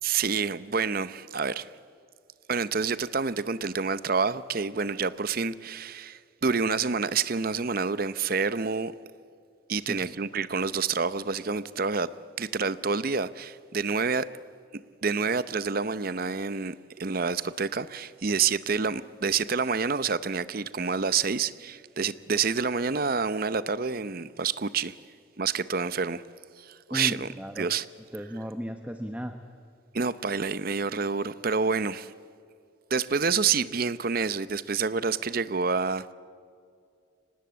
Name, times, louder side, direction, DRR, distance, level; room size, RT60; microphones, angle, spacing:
voice 1, 0.0-1.7 2.5-8.9 9.7-12.1 12.4-14.3 15.0-24.9 25.4-26.2 26.6-27.3 27.6-27.8 29.9-32.1 32.9-36.1, right 5 dB, 45° right, 0.7 m, -28 dB
voice 2, 9.7-10.1 26.9-27.7 28.1-29.3, equal, 5° right, 1.0 m, -35 dB
24.0 x 19.0 x 8.6 m
head